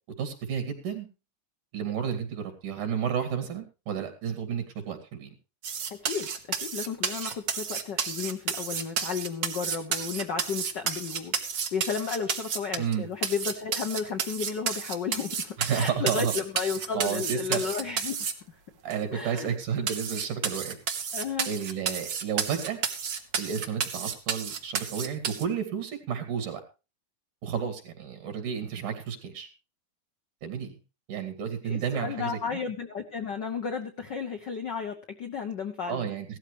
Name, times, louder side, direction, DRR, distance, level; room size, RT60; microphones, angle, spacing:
voice 1, 0.2-1.1 1.7-5.3 12.8-13.1 15.6-16.3 16.9-17.6 18.8-20.8 21.5-22.8 23.4-26.6 27.4-29.5 30.4-30.7 31.1-32.4 35.9-36.4, right 7 dB, 85° right, 6 dB, 4.0 m, -31 dB
sound 1, 5.6-12.9 13.2-18.3 18.9-19.0 19.4-19.5 19.9-25.4, right 7 dB, 50° right, 1.5 m, -31 dB
voice 2, 5.9-6.3 6.6-18.2 19.1-19.5 21.1-21.5 31.6-36.1, left 6 dB, 75° left, 6 dB, 1.0 m, -33 dB
16.5 x 13.0 x 3.1 m, 0.30 s
omnidirectional pair, 3.5 m